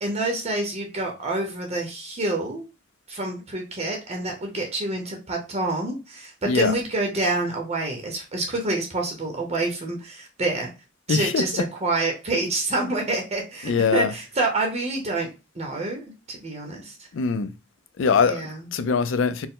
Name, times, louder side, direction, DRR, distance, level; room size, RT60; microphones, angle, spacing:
voice 1, 0.0-2.6 3.1-10.7 11.1-17.1 18.2-18.7, right 2 dB, 35° right, 0.8 m, -27 dB
voice 2, 11.1-11.5 13.6-14.1 17.1-17.5 18.0-18.4 18.7-19.5, left 5 dB, 75° left, 0.4 m, -22 dB
4.4 x 2.1 x 3.7 m
head